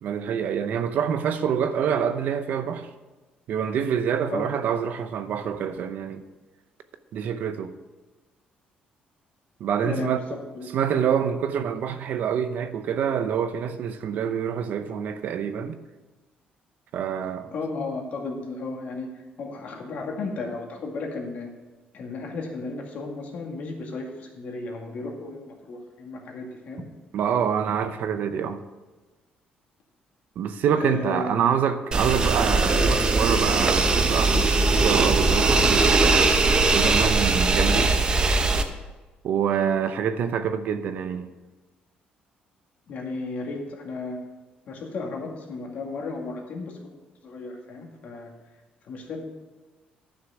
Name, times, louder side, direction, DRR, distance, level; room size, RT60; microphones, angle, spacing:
voice 1, 0.0-2.9 3.5-6.2 7.1-7.7 9.6-10.2 10.7-15.8 16.9-17.5 27.1-28.6 30.4-36.2 36.7-37.9 39.2-41.3, right 8 dB, 60° right, 10 dB, 0.7 m, -26 dB
voice 2, 9.8-11.1 17.5-19.1 19.4-21.5 21.9-26.8 30.8-31.5 42.9-44.2 44.7-46.8 47.2-48.3 48.8-49.2, left 3 dB, 55° left, 1 dB, 2.1 m, -34 dB
sound 1, 31.9-38.6, right 3 dB, 25° right, 0.8 m, -20 dB
11.0 x 6.3 x 6.4 m, 1.2 s
cardioid pair, 150°, 3 cm